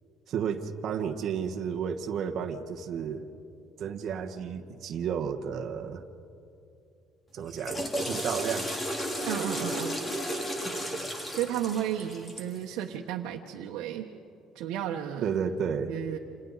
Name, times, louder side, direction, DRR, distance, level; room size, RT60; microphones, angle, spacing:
voice 1, 0.3-3.2 3.8-6.0 7.3-8.7 15.2-15.9, right 7 dB, 50° right, 3 dB, 1.2 m, -32 dB
Water / Toilet flush, 7.4-12.6, equal, 15° left, 2.2 m, -33 dB
voice 2, 9.3-10.0 11.3-14.1 14.5-15.4 15.9-16.2, right 10 dB, 85° right, 0 dB, 1.1 m, -33 dB
29.0 x 27.0 x 4.1 m, 2.6 s
cardioid pair, 145°, 0 cm